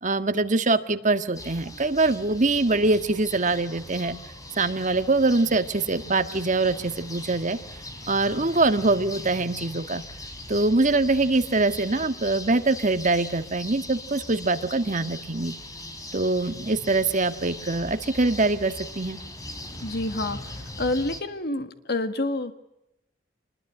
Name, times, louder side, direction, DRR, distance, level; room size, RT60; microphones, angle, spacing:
voice 1, 0.0-4.2 4.6-7.6 8.1-10.0 10.5-15.5 16.1-19.2, right 2 dB, 40° right, 9 dB, 1.6 m, -23 dB
sound 1, 1.3-21.2, left 1 dB, 20° left, 3.2 m, -40 dB
voice 2, 19.8-22.5, left 2 dB, 60° left, 9 dB, 1.7 m, -28 dB
27.0 x 21.0 x 9.9 m, 0.89 s
head